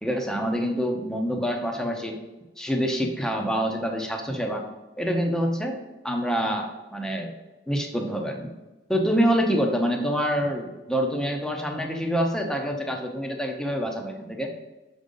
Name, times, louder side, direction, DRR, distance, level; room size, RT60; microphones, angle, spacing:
voice 1, 0.0-2.2 2.6-4.6 5.0-5.8 6.0-7.3 7.7-8.5 8.9-14.5, equal, 5° left, 2 dB, 0.8 m, -26 dB
6.3 x 5.2 x 3.9 m, 1.1 s
head